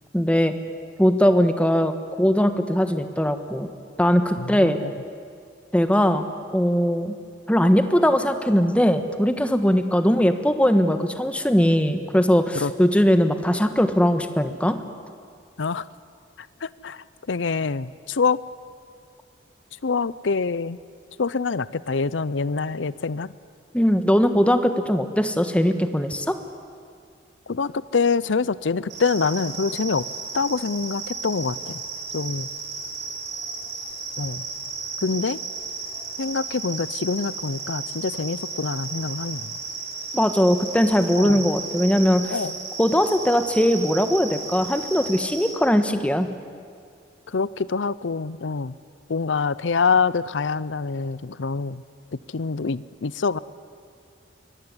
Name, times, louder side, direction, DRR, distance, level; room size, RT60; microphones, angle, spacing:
voice 1, 0.1-0.5 1.0-1.9 2.2-3.7 4.0-4.8 5.7-6.3 6.5-7.1 7.5-14.8 23.7-26.4 40.1-42.4 42.8-46.3, equal, 5° left, 8 dB, 1.3 m, -20 dB
voice 2, 4.4-4.9 12.5-12.7 15.6-15.9 16.6-18.4 19.8-20.8 21.2-23.3 27.5-30.1 30.3-31.8 32.1-32.5 34.2-34.4 35.0-35.4 36.2-39.5 41.2-41.5 42.3-42.5 47.3-48.7 49.1-51.8 52.3-53.4, left 4 dB, 90° left, 18 dB, 0.6 m, -25 dB
sound 1, 28.9-45.5, right 4 dB, 65° right, 5.8 m, -34 dB
24.5 x 22.0 x 9.7 m, 2.2 s
head